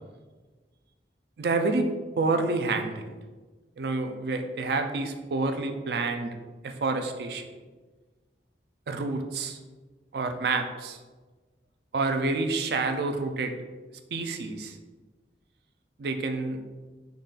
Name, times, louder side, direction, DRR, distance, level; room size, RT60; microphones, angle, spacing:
voice 1, 1.4-3.1 3.8-6.3 6.6-7.5 8.9-9.6 10.1-11.0 11.9-13.5 14.1-14.8 16.0-16.6, right 3 dB, 65° right, 6 dB, 0.4 m, -28 dB
3.9 x 2.4 x 3.8 m, 1.3 s
head